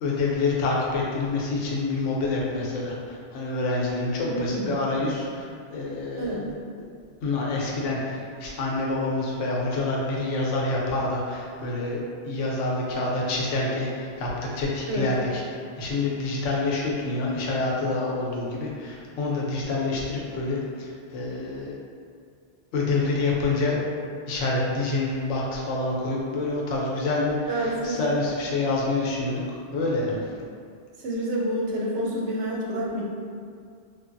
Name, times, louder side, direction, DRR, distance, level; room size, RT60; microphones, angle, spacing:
voice 1, 0.0-6.5 7.2-12.0 12.2-15.4 15.8-21.7 22.7-23.8 24.3-30.3, left 2 dB, 85° left, -3 dB, 0.9 m, -27 dB
voice 2, 4.3-4.8 6.2-6.4 14.9-15.1 27.5-28.0 31.0-33.0, right 1 dB, 80° right, -4 dB, 0.9 m, -28 dB
3.2 x 2.3 x 2.5 m, 2.3 s
omnidirectional pair, 1.2 m